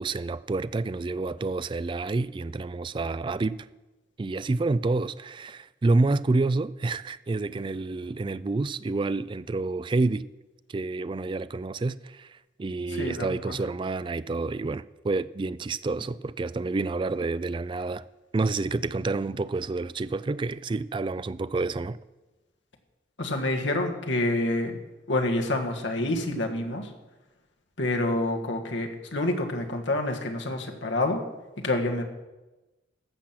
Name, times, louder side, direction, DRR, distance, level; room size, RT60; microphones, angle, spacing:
voice 1, 0.0-3.7 4.2-10.3 10.7-18.0 18.3-22.0, right 3 dB, 25° right, 0.3 m, -28 dB
voice 2, 12.9-13.5 23.2-24.8 25.1-26.9 27.8-31.2 31.6-32.0, left 2 dB, 75° left, 1.6 m, -27 dB
14.5 x 6.0 x 7.3 m
head